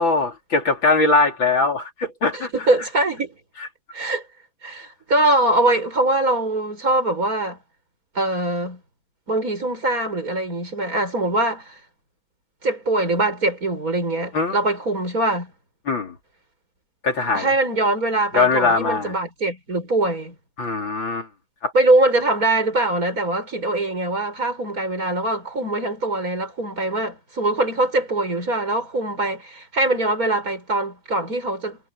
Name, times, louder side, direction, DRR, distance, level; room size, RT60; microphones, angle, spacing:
voice 1, 0.0-2.5 14.3-14.6 15.9-16.1 17.0-17.5 18.3-19.1 20.6-21.3 21.6-21.7, left 3 dB, 70° left, 4.2 m, -21 dB
voice 2, 2.3-3.4 3.9-4.2 4.6-7.6 8.1-8.8 9.3-11.7 12.6-15.5 17.3-20.3 21.7-31.8, right 2 dB, 45° right, 6.7 m, -22 dB
omnidirectional pair, 2.2 m